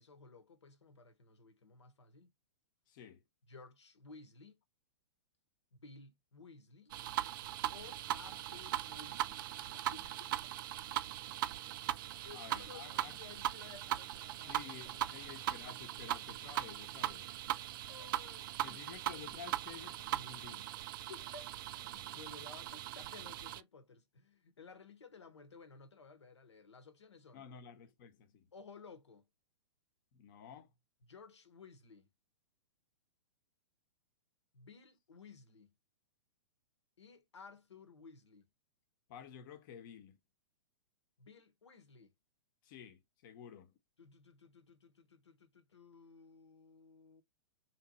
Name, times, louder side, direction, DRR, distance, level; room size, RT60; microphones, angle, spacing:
voice 1, 0.0-2.3 3.5-4.6 5.7-7.0 7.7-10.5 12.2-14.6 15.0-15.3 17.4-18.8 21.1-27.5 28.5-29.3 31.1-32.1 34.5-35.7 37.0-38.5 41.2-42.1 44.0-47.2, left 4 dB, 75° left, 1.1 m, -56 dB
voice 2, 2.9-3.2 12.3-13.2 14.4-17.3 18.6-20.7 27.3-28.5 30.1-30.7 39.1-40.2 42.6-43.7, left 8 dB, 45° left, 0.9 m, -52 dB
sound 1, 6.9-23.6, right 13 dB, 50° right, 0.4 m, -40 dB
3.7 x 3.0 x 4.2 m
figure-of-eight pair, 110°, 15 cm